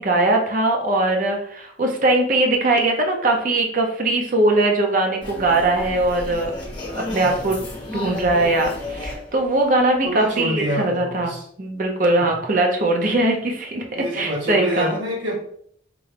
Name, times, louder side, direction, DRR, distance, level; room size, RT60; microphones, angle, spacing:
voice 1, 0.0-6.5 6.9-7.6 7.9-15.0, right 2 dB, 45° right, 2 dB, 0.6 m, -21 dB
sound 1, 5.2-10.4, left 2 dB, 25° left, 0.9 m, -33 dB
voice 2, 7.2-7.5 10.0-11.5 12.2-12.4 13.9-15.3, equal, 80° right, -3 dB, 1.2 m, -27 dB
3.7 x 2.2 x 3.3 m, 0.63 s
head